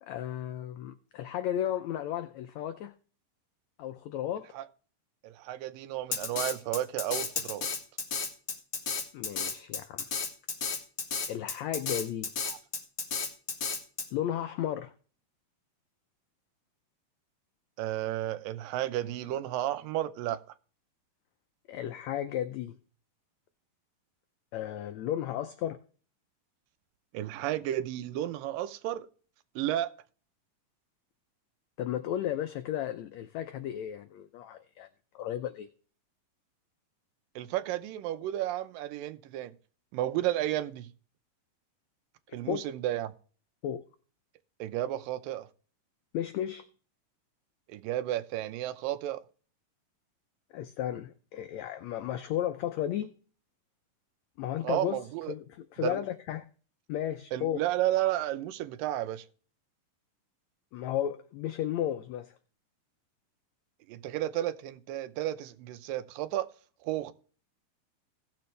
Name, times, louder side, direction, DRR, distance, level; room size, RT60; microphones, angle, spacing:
voice 1, 0.0-2.9 3.8-4.5 9.1-10.1 11.3-12.3 14.1-14.9 21.7-22.8 24.5-25.8 31.8-34.9 35.1-35.7 42.5-42.6 43.6-43.8 46.1-46.7 50.5-53.1 54.4-56.5 56.9-57.6 60.7-62.3, left 11 dB, 85° left, 1.5 m, -34 dB
voice 2, 5.2-7.7 17.8-20.4 27.1-29.1 29.6-29.9 37.4-39.5 39.9-40.9 42.3-43.1 44.6-45.5 47.7-49.2 54.6-55.3 55.8-56.0 57.3-59.2 63.9-66.5 66.8-67.1, right 13 dB, 85° right, 2.4 m, -32 dB
Drum kit, 6.1-14.1, left 5 dB, 45° left, 1.9 m, -32 dB
17.0 x 6.9 x 3.2 m
omnidirectional pair, 3.9 m